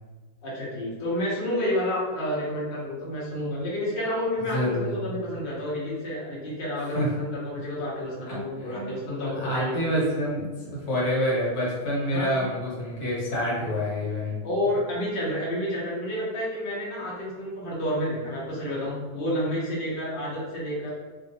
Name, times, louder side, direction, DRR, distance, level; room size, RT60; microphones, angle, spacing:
voice 1, 0.4-9.8 12.1-12.4 14.4-21.0, left 1 dB, 45° left, -6 dB, 0.8 m, -30 dB
voice 2, 4.4-5.0 6.9-7.1 8.3-9.0 9.4-14.4, equal, 65° left, -6 dB, 1.4 m, -27 dB
2.7 x 2.6 x 2.7 m, 1.4 s
omnidirectional pair, 1.8 m